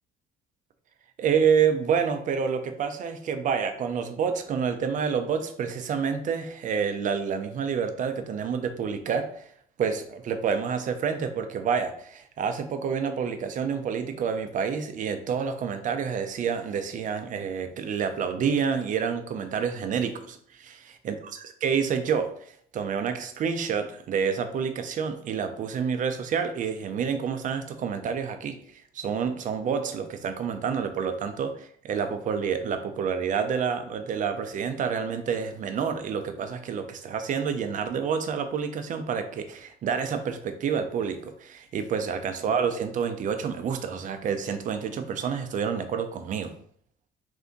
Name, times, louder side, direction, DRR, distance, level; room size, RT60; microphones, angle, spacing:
voice 1, 1.2-9.3 9.8-22.3 22.7-28.6 28.9-46.5, right 6 dB, 50° right, 8 dB, 0.5 m, -28 dB
3.4 x 2.7 x 3.9 m, 0.62 s
cardioid pair, 110°, 17 cm